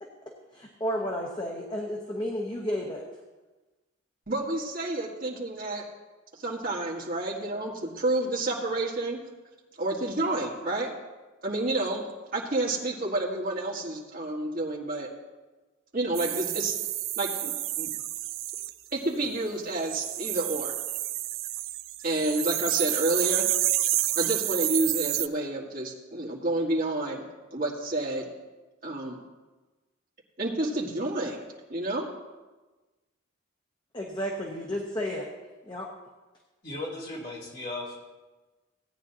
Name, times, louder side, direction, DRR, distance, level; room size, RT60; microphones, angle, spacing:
voice 1, 0.5-3.0 33.9-35.3 35.7-35.9, equal, 20° left, 0 dB, 0.9 m, -32 dB
voice 2, 4.3-5.8 6.4-9.2 9.8-10.9 11.4-12.1 12.3-15.1 15.9-16.8 17.2-17.9 18.9-20.7 22.0-23.5 24.2-27.2 27.5-28.3 28.8-29.2 30.4-31.4 31.7-32.1, right 2 dB, 45° right, -3 dB, 1.7 m, -29 dB
sound 1, 16.1-18.7 19.7-25.3, right 15 dB, 75° right, 0.4 m, -29 dB
voice 3, 36.6-38.0, left 2 dB, 45° left, -5 dB, 3.0 m, -36 dB
17.0 x 9.4 x 2.9 m, 1.2 s
head